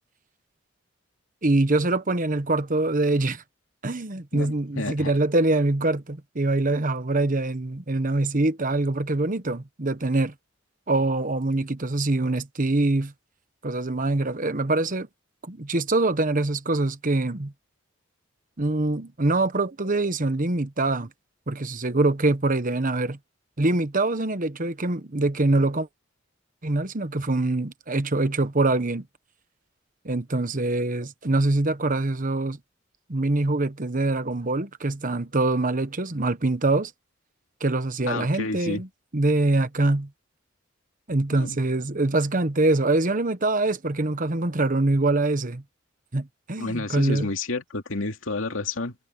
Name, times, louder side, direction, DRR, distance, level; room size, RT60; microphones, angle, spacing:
voice 1, 1.4-3.4 3.8-10.3 10.9-13.1 13.6-15.1 15.5-17.5 18.6-21.1 21.5-23.2 23.6-25.9 26.6-29.1 30.0-32.6 33.1-36.9 37.6-38.9 39.1-40.1 41.1-45.6 46.1-47.3, right 2 dB, 40° right, 1.2 m, -24 dB
voice 2, 4.3-5.1 38.1-38.8 41.3-41.6 46.6-49.0, left 3 dB, 85° left, 2.5 m, -30 dB
head